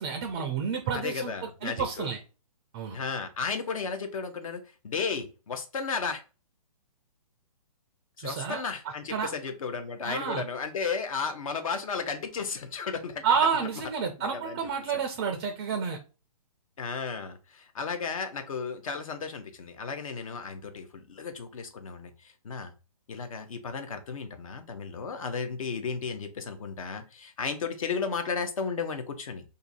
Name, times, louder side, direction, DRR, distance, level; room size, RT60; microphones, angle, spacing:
voice 1, 0.0-2.2 2.7-3.0 8.2-8.6 9.1-9.3 10.0-10.4 13.2-16.0, right 6 dB, 20° right, 5 dB, 0.4 m, -30 dB
voice 2, 0.9-2.1 2.9-6.2 8.2-13.2 14.0-14.7 14.9-15.0 16.8-22.7 23.1-29.4, left 5 dB, 60° left, 7 dB, 0.8 m, -34 dB
2.6 x 2.6 x 4.0 m, 0.33 s
hypercardioid pair, 150°, 19 cm